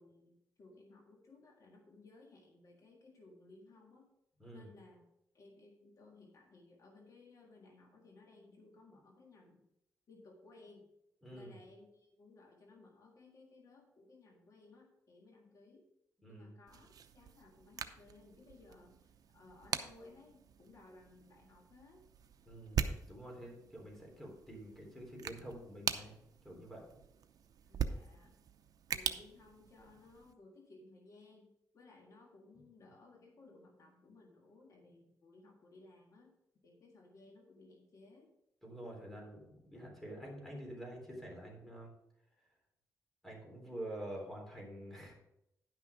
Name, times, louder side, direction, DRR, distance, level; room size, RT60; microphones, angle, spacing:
voice 1, 0.0-4.2 4.5-5.0 5.3-9.7 10.1-10.9 11.3-15.9 16.3-22.1 27.7-28.4 28.9-36.3 36.6-38.3, left 2 dB, 55° left, 1 dB, 1.7 m, -60 dB
voice 2, 4.4-4.7 11.2-11.5 16.2-16.5 22.4-26.2 26.4-26.8 38.6-41.9 43.2-45.1, right 1 dB, 5° left, -1 dB, 3.5 m, -47 dB
sound 1, 16.7-30.3, right 7 dB, 65° right, 0.7 m, -43 dB
10.5 x 6.0 x 4.9 m, 0.82 s
cardioid pair, 110°, 7 cm